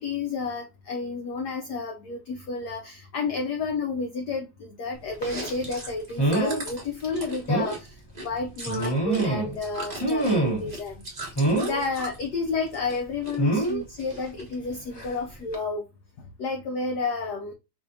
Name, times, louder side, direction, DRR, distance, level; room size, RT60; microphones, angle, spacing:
voice 1, 0.0-11.0 11.6-15.8 16.2-17.5, left 4 dB, 75° left, 0.9 m, -31 dB
Chewing mastication, 5.1-9.3 9.5-12.2 12.6-13.4 13.6-14.5, right 2 dB, 30° right, 0.9 m, -39 dB
sound 1, 5.2-5.4 6.2-6.6 7.0-7.1 7.5-7.7 8.6-9.6 10.0-10.7 11.4-11.8 13.4-13.8 15.0-15.1 15.5-15.6, right 2 dB, 20° left, 0.7 m, -25 dB
5.0 x 2.6 x 2.6 m
omnidirectional pair, 2.4 m